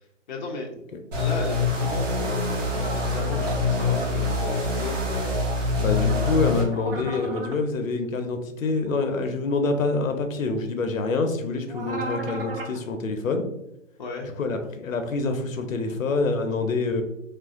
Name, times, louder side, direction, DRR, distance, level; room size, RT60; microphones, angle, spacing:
voice 1, 0.3-0.7 1.2-5.0 7.0-7.1 14.0-14.4, left 3 dB, 40° left, 0 dB, 0.4 m, -35 dB
sound 1, 1.1-6.6, left 3 dB, 65° right, 1.2 m, -25 dB
sound 2, 2.6-4.1 5.8-7.6 11.7-12.8, right 2 dB, 45° right, 0.6 m, -36 dB
voice 2, 5.8-13.5 14.4-17.0, left 3 dB, 80° left, 7 dB, 0.6 m, -26 dB
3.3 x 2.5 x 2.4 m, 0.84 s
hypercardioid pair, 145°, 39 cm